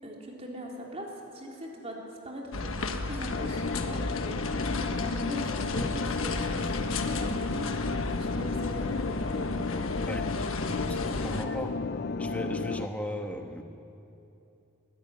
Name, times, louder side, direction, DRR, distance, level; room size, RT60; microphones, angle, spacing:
voice 1, 0.0-7.7 8.1-9.7 10.1-10.3, equal, 30° right, -2 dB, 3.7 m, -41 dB
sound 1, 2.5-11.4, left 2 dB, 80° left, 1.4 m, -33 dB
sound 2, 3.3-12.9, left 4 dB, 50° left, 0.4 m, -33 dB
voice 2, 10.7-11.8 12.1-13.6, equal, 5° left, 4 dB, 1.3 m, -36 dB
22.5 x 14.5 x 9.9 m, 2.8 s
head